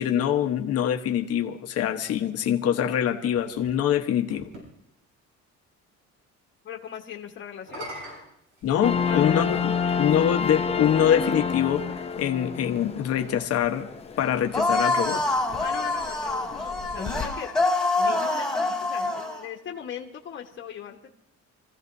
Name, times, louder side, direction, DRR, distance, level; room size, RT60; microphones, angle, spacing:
voice 1, 0.0-4.5 8.6-13.9 14.2-15.2, left 9 dB, 55° left, 6 dB, 1.2 m, -24 dB
sound 1, 3.5-4.7 7.5-9.3 10.2-10.3 14.0-15.6, right 1 dB, 80° right, 7.4 m, -44 dB
voice 2, 6.6-7.9 9.1-9.5 15.6-17.5 18.0-21.1, left 9 dB, 40° left, 2 dB, 1.4 m, -39 dB
sound 2, 8.8-17.3, left 6 dB, 20° left, 0.7 m, -30 dB
sound 3, 14.5-19.4, left 2 dB, ahead, 2.1 m, -26 dB
27.5 x 15.0 x 2.7 m, 0.77 s
cardioid pair, 170°, 29 cm